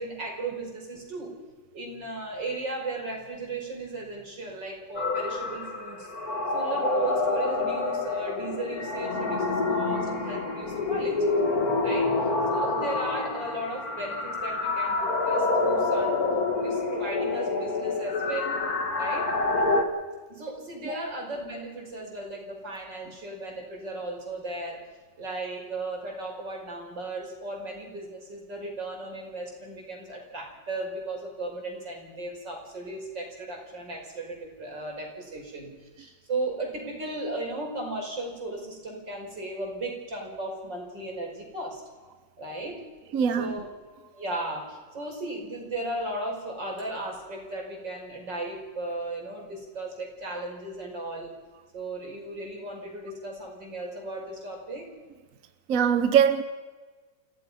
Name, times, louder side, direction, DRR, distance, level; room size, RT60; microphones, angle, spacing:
voice 1, 0.0-1.4 1.7-6.2 6.5-11.3 11.8-15.0 15.3-18.6 19.0-19.3 20.3-24.9 25.2-41.8 42.4-42.8 43.4-43.7 44.1-51.3 51.7-54.9, right 2 dB, 70° right, 6.0 m, -36 dB
sound 1, 5.0-19.8, left 3 dB, 50° left, 2.6 m, -27 dB
voice 2, 43.1-43.6 55.7-56.4, right 8 dB, 50° right, 1.3 m, -22 dB
29.5 x 16.5 x 5.6 m
omnidirectional pair, 2.0 m